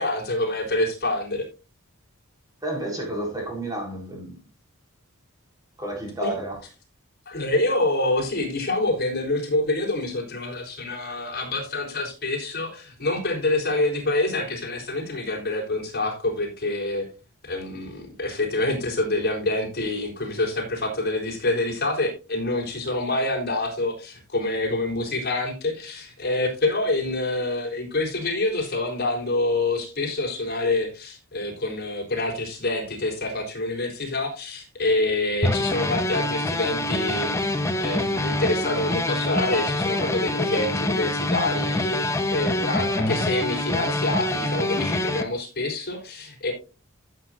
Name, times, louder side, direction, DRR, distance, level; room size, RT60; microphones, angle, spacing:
voice 1, 0.0-1.5 6.2-6.3 7.3-17.1 17.4-46.5, left 2 dB, 50° left, 3.7 m, -26 dB
voice 2, 2.6-4.4 5.8-6.6, right 1 dB, 15° right, 4.0 m, -31 dB
sound 1, 35.4-45.2, left 1 dB, 15° left, 0.9 m, -25 dB
15.0 x 7.6 x 2.6 m
head